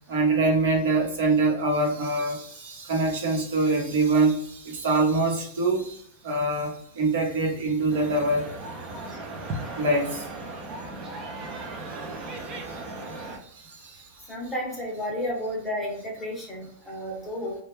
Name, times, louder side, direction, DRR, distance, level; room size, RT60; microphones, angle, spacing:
voice 1, 0.1-8.5 9.8-10.3 11.5-12.0 12.3-12.8 13.1-14.3, right 2 dB, 70° right, 0 dB, 0.9 m, -25 dB
sound 1, 7.9-13.4, right 2 dB, 25° right, 0.4 m, -37 dB
voice 2, 14.3-17.6, equal, 10° left, -3 dB, 0.7 m, -32 dB
2.1 x 2.1 x 3.1 m, 0.65 s
supercardioid pair, 160°, 0 cm